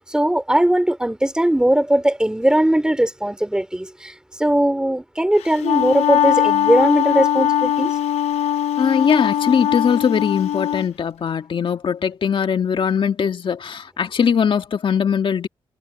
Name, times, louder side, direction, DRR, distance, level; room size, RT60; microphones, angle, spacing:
voice 1, 0.0-8.0, right 1 dB, 10° right, 3.0 m, -19 dB
Wind instrument woodwind instrument, 5.4-10.9, left 11 dB, 90° left, 0.8 m, -20 dB
voice 2, 8.8-15.5, left 7 dB, 55° left, 1.9 m, -20 dB
cardioid pair, 75°, 10 cm